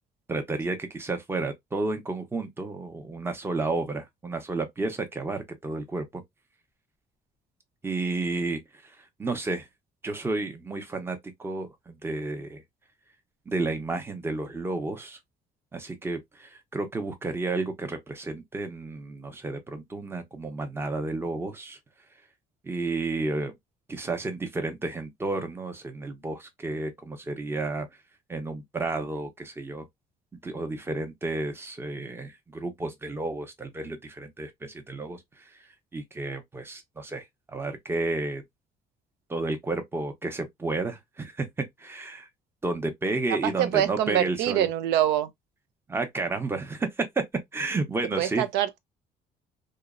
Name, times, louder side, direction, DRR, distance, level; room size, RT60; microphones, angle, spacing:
voice 1, 0.3-6.2 7.8-8.6 9.2-9.6 10.0-12.6 13.5-15.2 15.7-21.8 22.6-23.5 23.9-27.9 28.3-29.8 30.4-35.2 35.9-37.2 37.5-38.4 39.3-41.5 41.8-42.3 42.6-44.7 45.9-46.9 47.5-48.4, right 2 dB, 15° right, 0.6 m, -31 dB
voice 2, 43.3-45.3 48.0-48.8, right 11 dB, 85° right, 0.4 m, -25 dB
2.8 x 2.0 x 2.3 m
cardioid pair, 110°, 17 cm